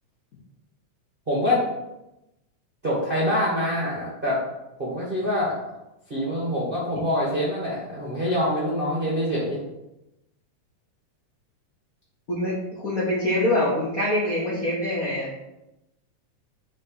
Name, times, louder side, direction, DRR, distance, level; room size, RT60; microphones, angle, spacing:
voice 1, 1.3-1.6 2.8-4.4 4.8-5.5 6.1-9.6, left 1 dB, 40° right, -7 dB, 0.7 m, -25 dB
voice 2, 12.3-15.3, left 1 dB, 85° left, -6 dB, 0.7 m, -24 dB
4.3 x 4.1 x 5.6 m, 0.93 s
omnidirectional pair, 3.5 m